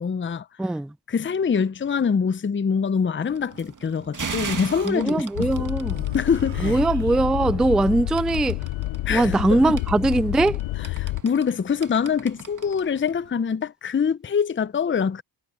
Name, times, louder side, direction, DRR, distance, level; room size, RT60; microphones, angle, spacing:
voice 1, 0.0-0.5 1.1-5.7 6.1-6.8 9.0-9.8 10.8-15.2, left 6 dB, 25° left, 0.7 m, -24 dB
voice 2, 0.6-0.9 4.8-6.1 6.6-8.6 9.1-10.6, right 2 dB, ahead, 0.3 m, -21 dB
sound 1, 3.3-13.3, right 5 dB, 45° right, 2.1 m, -40 dB
Human voice, 4.2-4.9 5.9-7.8, right 8 dB, 65° right, 2.4 m, -39 dB
sound 2, 5.3-11.2, left 18 dB, 85° left, 0.7 m, -29 dB
supercardioid pair, 50°, 44 cm